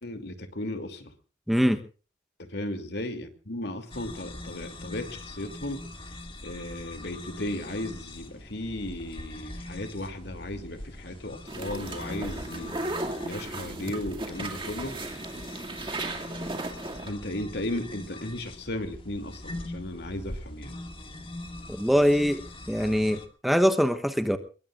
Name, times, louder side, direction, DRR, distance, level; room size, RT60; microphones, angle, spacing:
voice 1, 0.0-1.1 2.4-5.8 6.4-12.7 13.2-15.0 17.0-20.8, left 1 dB, 60° left, 7 dB, 2.7 m, -35 dB
voice 2, 1.5-1.8 21.7-24.4, equal, ahead, 7 dB, 0.9 m, -23 dB
sound 1, 3.9-23.3, left 1 dB, 30° left, 2.0 m, -42 dB
sound 2, 11.5-17.1, right 2 dB, 30° right, 2.3 m, -35 dB
24.5 x 22.5 x 2.5 m, 0.37 s
head